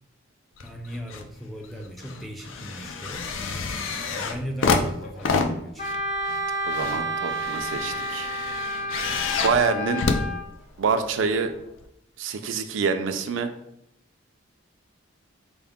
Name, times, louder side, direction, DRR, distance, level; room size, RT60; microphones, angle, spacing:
sound 1, 0.6-1.3 1.6-11.0 11.8-11.9, left 4 dB, 75° left, 0.4 m, -29 dB
voice 1, 0.6-3.3 4.1-5.9, equal, ahead, 1 dB, 0.3 m, -37 dB
Wind instrument woodwind instrument, 5.8-10.4, equal, 35° left, 0.7 m, -30 dB
voice 2, 6.7-8.3 9.4-10.0 10.8-11.5 12.2-13.5, right 5 dB, 70° right, 7 dB, 0.4 m, -26 dB
4.6 x 2.0 x 3.5 m, 0.77 s
head